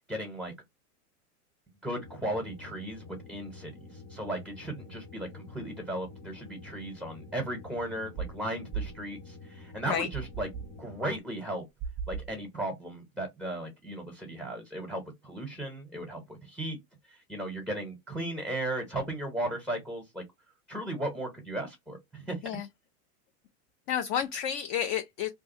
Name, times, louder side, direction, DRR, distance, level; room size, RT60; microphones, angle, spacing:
voice 1, 0.1-0.5 1.8-10.5 10.8-11.6 12.1-16.8 17.1-20.2 20.7-22.4, right 1 dB, ahead, 0.9 m, -36 dB
sound 1, 2.0-11.2, left 3 dB, 70° left, 1.7 m, -48 dB
sound 2, 8.2-8.4 8.7-9.0 10.1-10.7 11.8-12.4, right 6 dB, 20° right, 0.5 m, -36 dB
voice 2, 23.9-25.3, left 9 dB, 40° left, 0.4 m, -30 dB
2.6 x 2.3 x 4.1 m
hypercardioid pair, 115°, 46 cm